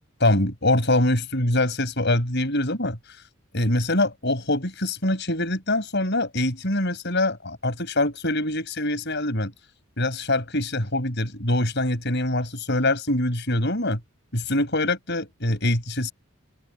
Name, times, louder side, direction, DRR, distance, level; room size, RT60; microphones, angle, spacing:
voice 1, 0.2-3.0 3.5-9.5 10.0-14.0 14.3-16.1, left 1 dB, 50° left, 7.1 m, -24 dB
head